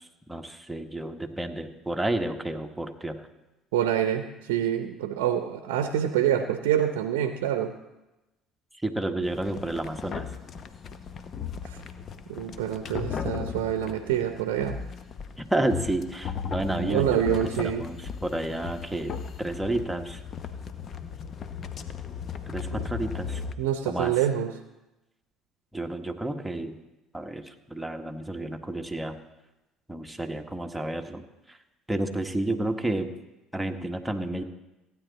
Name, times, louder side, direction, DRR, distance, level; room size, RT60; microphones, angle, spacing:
voice 1, 0.0-3.3 8.8-10.3 15.4-20.2 22.5-23.4 23.8-24.2 25.7-26.8 27.1-29.2 29.9-31.2 31.5-31.6 31.9-33.1 33.5-34.4, right 1 dB, 5° right, 4 dB, 1.3 m, -31 dB
voice 2, 3.7-7.7 11.6-11.8 12.3-14.8 16.8-17.8 22.7-22.8 23.6-24.5, right 10 dB, 75° right, 7 dB, 0.7 m, -26 dB
sound 1, 9.2-23.5, left 7 dB, 45° left, 0.8 m, -37 dB
15.5 x 9.4 x 4.1 m, 1.0 s
hypercardioid pair, 60°, 0 cm